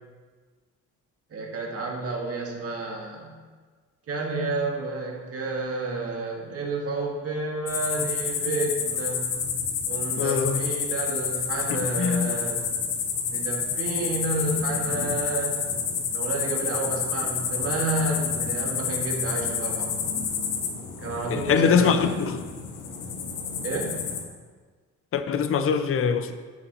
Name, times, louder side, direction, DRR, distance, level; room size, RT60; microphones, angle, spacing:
voice 1, 1.3-3.3 4.1-9.4 9.8-12.6 13.3-15.7 16.1-20.1 21.0-22.1 23.6-24.1, right 2 dB, 50° right, 1.8 m, -30 dB
sound 1, 7.7-24.2, left 6 dB, 85° left, 1.1 m, -29 dB
voice 2, 10.2-10.7 11.7-12.3 21.3-22.4 25.1-26.3, left 6 dB, 45° left, 0.6 m, -23 dB
9.6 x 7.8 x 3.0 m
cardioid pair, 90°, 30 cm